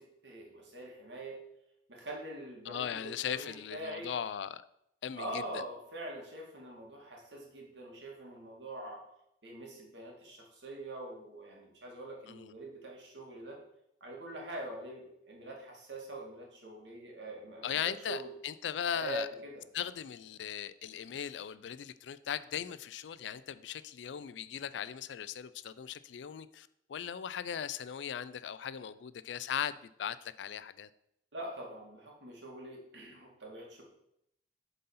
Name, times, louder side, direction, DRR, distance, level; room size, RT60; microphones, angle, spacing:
voice 1, 0.0-1.4 1.9-4.1 5.2-9.0 9.4-13.6 14.0-18.3 18.9-19.6 31.3-33.8, right 1 dB, 75° right, -1 dB, 2.1 m, -44 dB
voice 2, 2.7-4.6 5.0-5.6 12.3-12.5 17.6-19.3 19.7-30.9, left 8 dB, 75° left, 15 dB, 0.4 m, -38 dB
7.6 x 4.1 x 5.5 m, 0.78 s
head